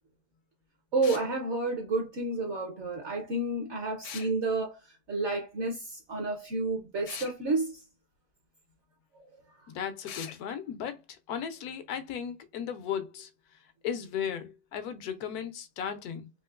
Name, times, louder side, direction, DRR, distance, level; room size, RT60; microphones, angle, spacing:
voice 1, 0.9-4.8 5.1-7.8, right 3 dB, 60° right, 0.8 m, -30 dB
sound 1, 1.0-1.3 4.0-4.3 7.1-7.4 10.1-10.4, left 8 dB, 65° left, 0.8 m, -41 dB
voice 2, 9.7-13.3 13.8-16.3, left 8 dB, 90° left, 1.2 m, -36 dB
3.7 x 2.8 x 2.3 m
omnidirectional pair, 1.6 m